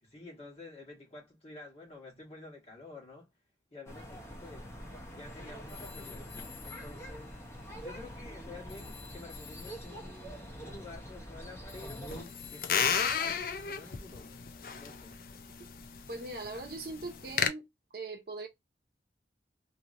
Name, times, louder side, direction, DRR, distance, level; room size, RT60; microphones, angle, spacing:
voice 1, 0.0-3.3 3.7-4.8 5.1-6.3 6.6-7.3 7.8-12.2 12.5-14.3 14.7-15.2, left 2 dB, 35° left, 1.3 m, -50 dB
sound 1, 3.9-12.2, equal, 15° left, 0.8 m, -45 dB
Telephone, 5.7-8.4 8.7-13.9, left 9 dB, 70° left, 1.1 m, -53 dB
sound 2, 12.1-17.5, left 7 dB, 50° left, 0.4 m, -33 dB
voice 2, 16.1-17.6 17.9-18.5, right 2 dB, 60° right, 0.7 m, -40 dB
3.0 x 2.6 x 2.5 m
head